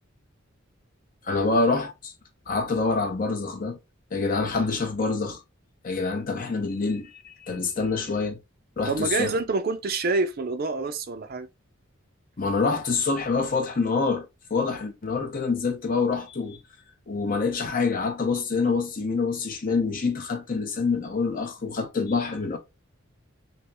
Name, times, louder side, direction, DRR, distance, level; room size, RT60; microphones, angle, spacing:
voice 1, 1.3-2.1 2.5-3.8 4.1-5.4 5.8-8.4 8.8-9.3 12.4-16.6 17.1-22.6, left 4 dB, 40° left, 0.8 m, -26 dB
voice 2, 8.9-11.5, right 3 dB, 45° right, 0.5 m, -27 dB
3.4 x 3.0 x 2.9 m
head